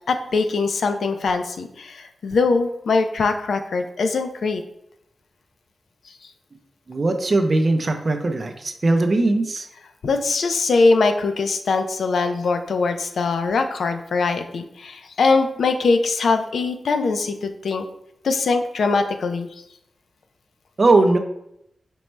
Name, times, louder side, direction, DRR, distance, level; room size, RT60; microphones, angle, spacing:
voice 1, 0.1-4.6 10.0-17.9 18.2-19.5, left 4 dB, 75° left, 7 dB, 0.4 m, -22 dB
voice 2, 6.9-9.7 20.8-21.2, right 2 dB, 35° right, 6 dB, 0.4 m, -19 dB
5.2 x 2.1 x 4.4 m, 0.77 s
wide cardioid pair, 170°, 0 cm